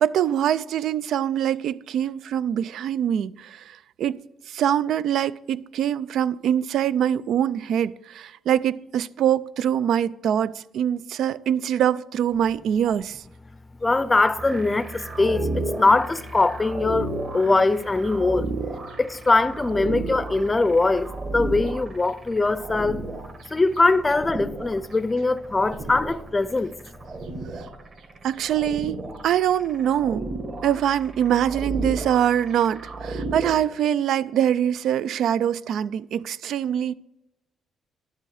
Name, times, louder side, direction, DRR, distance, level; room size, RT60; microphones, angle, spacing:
voice 1, 0.0-4.2 4.5-13.2 27.5-27.6 28.2-30.3 30.6-36.9, right 10 dB, 75° right, 0.4 m, -24 dB
voice 2, 13.8-18.5 19.0-23.0 23.5-26.7, left 3 dB, 20° left, 0.5 m, -22 dB
sound 1, 14.4-33.5, right 2 dB, 40° right, 2.0 m, -33 dB
11.0 x 7.3 x 4.8 m
cardioid pair, 90°, 0 cm